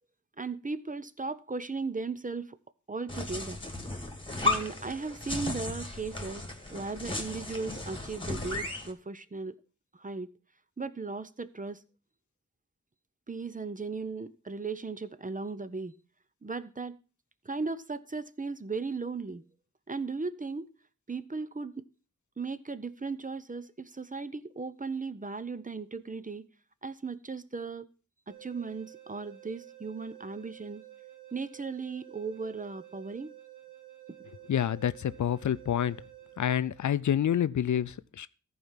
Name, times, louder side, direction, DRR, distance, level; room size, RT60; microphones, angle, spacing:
voice 1, 0.4-2.6 2.9-3.6 4.4-6.4 6.7-9.6 9.9-10.3 10.8-11.8 13.3-16.0 16.4-17.0 17.4-19.4 19.9-20.7 21.1-21.9 22.4-26.4 26.8-27.9 28.3-30.8 31.3-33.3, right 4 dB, 25° right, 0.7 m, -37 dB
sound 1, 3.1-8.9, left 2 dB, 15° left, 2.1 m, -35 dB
sound 2, 28.3-37.2, right 14 dB, 70° right, 2.5 m, -52 dB
voice 2, 34.5-36.0 36.4-38.3, left 9 dB, 70° left, 0.5 m, -28 dB
14.0 x 4.8 x 5.7 m
wide cardioid pair, 65°, 30 cm